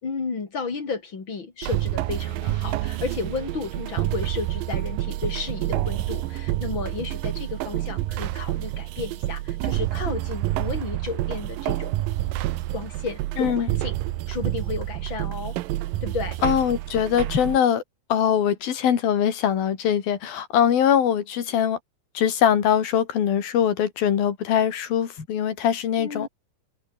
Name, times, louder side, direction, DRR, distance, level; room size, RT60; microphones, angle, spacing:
voice 1, 0.0-11.9 12.7-13.9 14.3-15.6 16.0-16.4 17.3-17.4 25.2-25.3 26.0-26.3, left 4 dB, 30° left, 3.9 m, -33 dB
sound 1, 1.6-17.6, right 16 dB, 75° right, 2.5 m, -28 dB
voice 2, 13.4-13.7 16.4-17.8 18.1-21.8 22.1-26.3, left 9 dB, 75° left, 4.3 m, -22 dB
omnidirectional pair, 4.3 m